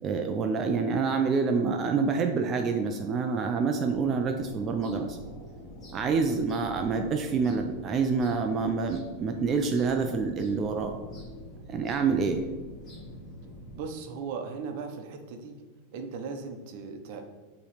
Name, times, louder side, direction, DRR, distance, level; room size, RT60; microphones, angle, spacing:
voice 1, 0.0-5.2 5.9-10.9 11.7-12.4, right 5 dB, 20° right, 5 dB, 0.4 m, -27 dB
sound 1, 3.8-13.8, equal, 15° left, 1.8 m, -45 dB
voice 2, 13.7-15.5 15.9-17.2, right 5 dB, 45° right, 5 dB, 0.8 m, -38 dB
7.0 x 3.1 x 4.9 m, 1.3 s
supercardioid pair, 165°, 0 cm